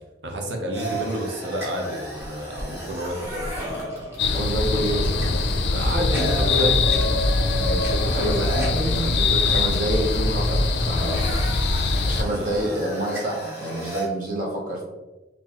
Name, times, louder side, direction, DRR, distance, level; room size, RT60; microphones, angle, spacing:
voice 1, 0.2-3.5 5.7-6.8 12.3-12.8, equal, 90° right, 2 dB, 0.7 m, -29 dB
sound 1, 0.7-14.1, equal, 15° right, 0.9 m, -32 dB
sound 2, 4.2-12.2, left 3 dB, 75° left, 0.4 m, -22 dB
voice 2, 4.2-5.1 7.6-11.3 11.8-14.8, right 1 dB, 50° right, -3 dB, 1.0 m, -28 dB
3.7 x 2.7 x 2.9 m, 1.1 s
head